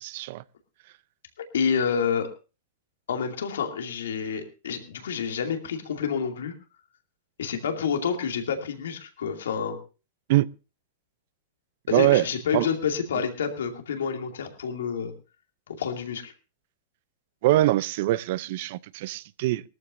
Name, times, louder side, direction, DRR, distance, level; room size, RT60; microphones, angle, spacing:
voice 1, 0.0-0.4 10.3-10.5 11.9-12.7 17.4-19.6, right 16 dB, 60° right, 0.5 m, -23 dB
voice 2, 1.5-2.3 3.1-6.5 7.4-9.8 11.9-15.1 15.7-16.3, left 6 dB, 90° left, 2.4 m, -28 dB
19.5 x 14.0 x 2.6 m
hypercardioid pair, 135°, 0 cm